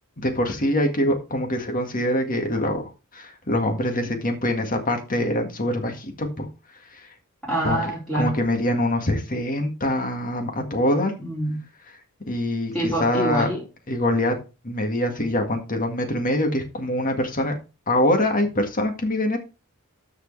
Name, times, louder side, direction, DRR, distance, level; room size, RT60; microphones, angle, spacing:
voice 1, 0.2-6.5 6.9-7.0 7.6-7.8 8.1-11.1 12.3-13.5 13.9-17.5 17.9-19.4, left 1 dB, 40° left, 4 dB, 1.8 m, -24 dB
voice 2, 7.4-8.3 11.2-11.6 12.7-13.6, right 1 dB, ahead, -8 dB, 4.0 m, -26 dB
13.5 x 4.9 x 3.3 m, 0.30 s
head